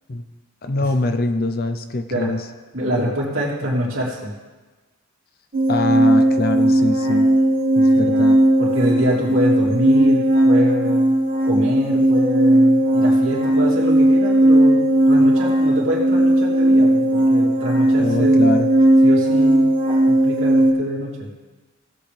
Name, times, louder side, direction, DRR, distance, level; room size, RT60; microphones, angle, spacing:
voice 1, 0.6-2.4 5.7-7.3 7.8-8.4 18.0-18.7, left 2 dB, 45° left, 8 dB, 0.6 m, -23 dB
voice 2, 2.7-4.3 7.9-8.2 8.6-11.1 11.4-18.5 19.0-19.7 20.1-21.3, equal, 60° right, -4 dB, 3.1 m, -25 dB
sound 1, 5.5-20.7, right 1 dB, 40° right, 1.8 m, -16 dB
18.0 x 8.0 x 3.4 m, 1.3 s
head